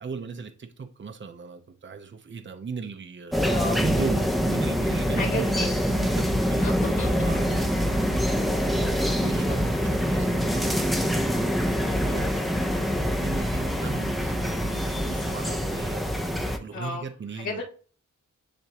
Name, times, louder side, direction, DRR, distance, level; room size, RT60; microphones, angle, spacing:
voice 1, 0.0-3.4 3.8-5.8 6.2-6.7 7.2-16.0 16.4-17.6, right 5 dB, 40° right, 0.8 m, -37 dB
sound 1, 3.3-16.6, equal, ahead, 0.8 m, -25 dB
voice 2, 3.4-3.8 5.2-5.7 6.6-7.3 16.7-17.1 17.3-17.6, left 2 dB, 65° left, 2.3 m, -32 dB
10.0 x 3.5 x 3.0 m
wide cardioid pair, 145°, 30 cm